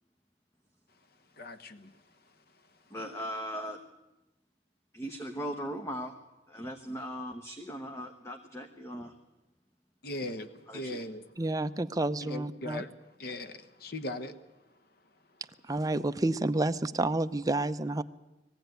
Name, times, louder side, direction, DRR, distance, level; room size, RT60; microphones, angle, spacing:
voice 1, 1.4-1.9 10.0-11.2 12.2-12.9 13.2-14.4, left 1 dB, 60° left, 1.2 m, -39 dB
voice 2, 2.9-3.8 4.9-6.1 6.5-9.1 10.7-11.0, equal, 15° left, 1.1 m, -38 dB
voice 3, 11.4-12.8 15.7-18.0, right 2 dB, 20° right, 0.6 m, -29 dB
20.5 x 15.0 x 9.2 m
head